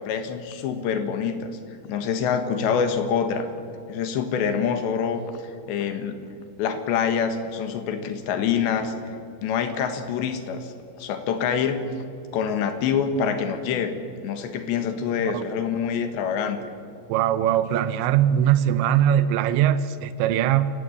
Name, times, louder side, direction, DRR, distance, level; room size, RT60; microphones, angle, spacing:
voice 1, 0.0-1.6 1.9-3.5 3.9-5.2 5.7-6.2 6.6-9.2 9.4-10.7 11.0-11.9 12.3-16.6, left 7 dB, 80° left, 8 dB, 3.8 m, -26 dB
voice 2, 17.1-20.7, right 10 dB, 90° right, 13 dB, 3.1 m, -21 dB
28.5 x 16.0 x 8.1 m, 2.5 s
omnidirectional pair, 5.1 m